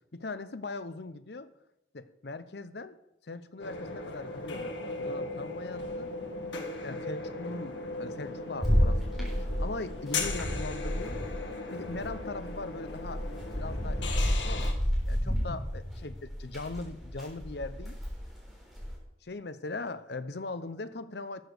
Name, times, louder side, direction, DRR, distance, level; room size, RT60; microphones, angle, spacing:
voice 1, 0.1-1.5 1.9-3.0 3.2-6.1 6.8-7.7 8.0-11.2 11.7-13.2 13.5-14.7 15.1-18.0 19.2-21.4, left 3 dB, 65° left, 13 dB, 0.7 m, -40 dB
sound 1, 3.6-14.7, left 3 dB, 85° left, 1.8 m, -38 dB
sound 2, 8.6-11.4 11.7-18.9, equal, ahead, 3.8 m, -31 dB
12.5 x 7.0 x 6.5 m, 0.85 s
head